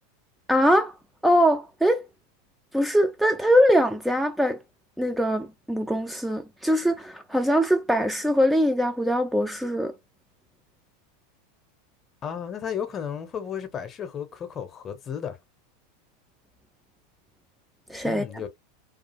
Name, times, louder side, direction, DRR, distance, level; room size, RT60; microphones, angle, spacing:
voice 1, 0.5-1.0 1.2-2.1 2.7-4.6 5.0-9.9 17.9-18.2, equal, 5° right, 0.3 m, -22 dB
voice 2, 12.2-15.4 18.0-18.5, left 8 dB, 30° left, 0.6 m, -33 dB
2.4 x 2.4 x 2.9 m
figure-of-eight pair, 85°, 0 cm